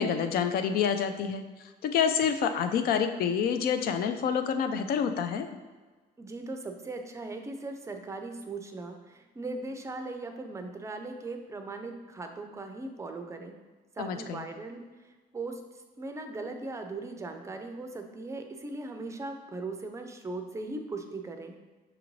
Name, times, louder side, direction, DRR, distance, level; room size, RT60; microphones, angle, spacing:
voice 1, 0.0-1.4 1.8-5.5 14.0-14.4, left 7 dB, 65° left, 8 dB, 0.4 m, -27 dB
voice 2, 6.2-13.5 14.0-15.6 16.0-21.6, right 2 dB, 15° right, 5 dB, 0.4 m, -39 dB
5.8 x 2.5 x 3.0 m, 1.3 s
cardioid pair, 110°, 17 cm